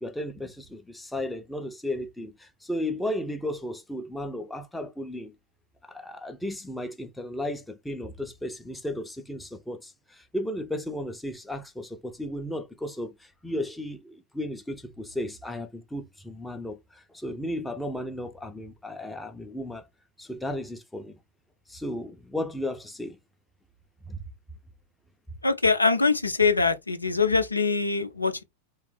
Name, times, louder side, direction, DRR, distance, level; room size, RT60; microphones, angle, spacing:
voice 1, 0.0-5.3 5.8-19.9 20.2-21.2 21.7-23.2 24.1-24.2, left 1 dB, 5° left, 0.6 m, -34 dB
voice 2, 25.4-28.4, left 4 dB, 80° left, 0.5 m, -23 dB
3.3 x 3.1 x 3.3 m
figure-of-eight pair, 90°, 0 cm